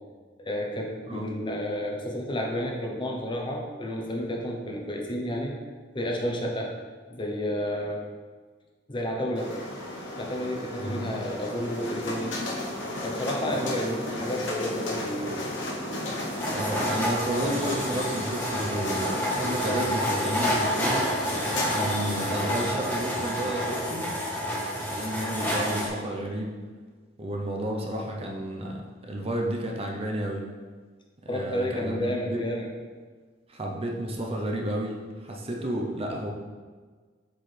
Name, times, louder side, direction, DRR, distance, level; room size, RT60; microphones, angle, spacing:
voice 1, 0.4-5.5 5.9-6.7 7.1-8.0 8.9-9.6 10.2-12.3 13.0-15.4 31.3-32.7, equal, 25° left, 0 dB, 0.8 m, -31 dB
sound 1, 9.4-23.8, left 1 dB, 85° left, 1.1 m, -34 dB
voice 2, 13.5-14.0 16.5-21.1 21.7-24.1 24.8-26.6 27.2-30.4 31.2-32.4 33.5-36.3, right 1 dB, 35° right, 0 dB, 0.7 m, -32 dB
sound 2, 16.4-25.9, equal, 10° left, 1.3 m, -29 dB
7.6 x 4.7 x 3.3 m, 1.5 s
head